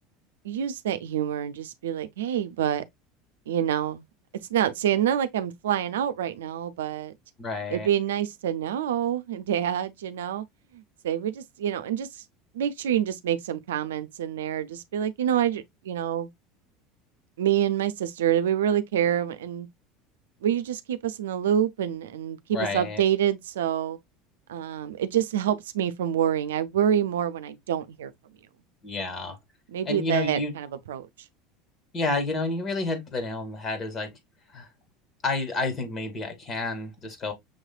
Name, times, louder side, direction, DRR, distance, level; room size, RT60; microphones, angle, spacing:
voice 1, 0.4-2.8 3.5-4.0 4.5-7.1 7.7-10.4 10.7-12.1 12.5-16.3 17.4-19.7 20.4-24.0 24.5-28.1 29.7-31.1, right 10 dB, 80° right, 0.5 m, -27 dB
voice 2, 7.4-7.9 22.5-23.0 28.8-29.4 29.9-30.5 31.9-34.1 34.5-34.7 35.2-37.3, left 3 dB, 35° left, 2.1 m, -30 dB
6.3 x 3.2 x 2.3 m
hypercardioid pair, 80°, 0 cm